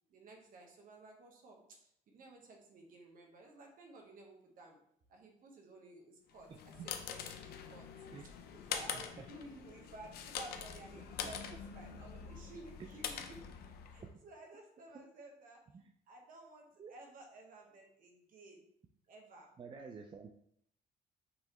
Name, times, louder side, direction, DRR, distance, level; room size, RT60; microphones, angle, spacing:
voice 1, 0.1-4.8 5.1-7.9 8.2-11.4 11.7-13.5 13.9-15.6 16.1-18.6 19.1-19.5, right 2 dB, 55° right, 1 dB, 1.2 m, -54 dB
sound 1, 6.4-14.1, left 8 dB, 70° left, 0.6 m, -44 dB
voice 2, 8.9-9.2 11.2-11.3 12.8-12.9 14.0-14.2 15.7-15.8 16.8-16.9 19.6-20.3, right 5 dB, 30° right, 3 dB, 0.4 m, -49 dB
5.2 x 3.2 x 3.0 m, 0.70 s
cardioid pair, 110°, 17 cm